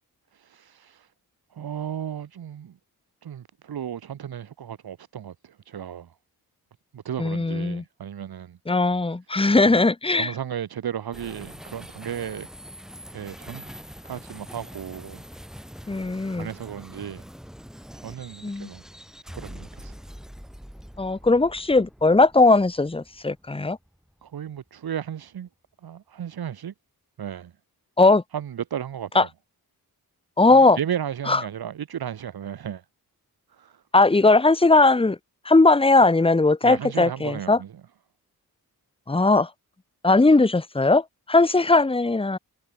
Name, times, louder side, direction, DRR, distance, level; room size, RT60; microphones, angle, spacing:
voice 1, 0.3-1.1 1.5-2.8 3.2-6.2 6.9-8.6 9.6-9.8 10.2-12.5 13.1-13.7 14.0-15.2 16.4-17.2 17.9-18.8 19.3-20.0 24.2-25.5 25.8-26.7 27.2-27.5 28.3-29.3 30.5-32.8 33.5-33.8 36.6-37.7, right 9 dB, 75° right, 1.4 m, -34 dB
voice 2, 7.2-7.8 8.7-10.3 15.9-16.5 18.4-18.7 21.0-23.8 28.0-28.2 29.1-29.2 30.4-30.8 31.3-31.4 33.9-35.2 35.4-37.6 39.1-39.5 40.0-42.4, left 3 dB, 15° left, 1.2 m, -19 dB
sound 1, 11.1-24.5, equal, ahead, 3.1 m, -44 dB
wide cardioid pair, 130°, 37 cm